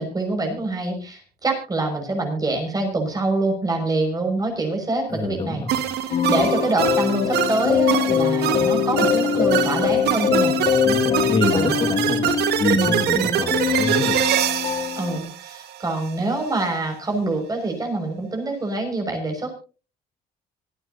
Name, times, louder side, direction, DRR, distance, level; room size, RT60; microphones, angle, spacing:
voice 1, 0.0-5.6 6.0-10.6 11.5-11.8 12.7-13.4 15.0-19.5, right 2 dB, 20° right, 3 dB, 6.0 m, -25 dB
voice 2, 5.1-5.9 10.8-14.3, left 3 dB, 30° left, 4 dB, 2.1 m, -26 dB
sound 1, 5.7-16.1, right 11 dB, 75° right, 1.7 m, -24 dB
sound 2, 6.1-15.2, left 7 dB, 50° left, 2.6 m, -23 dB
25.5 x 9.5 x 2.8 m, 0.35 s
cardioid pair, 110°, 17 cm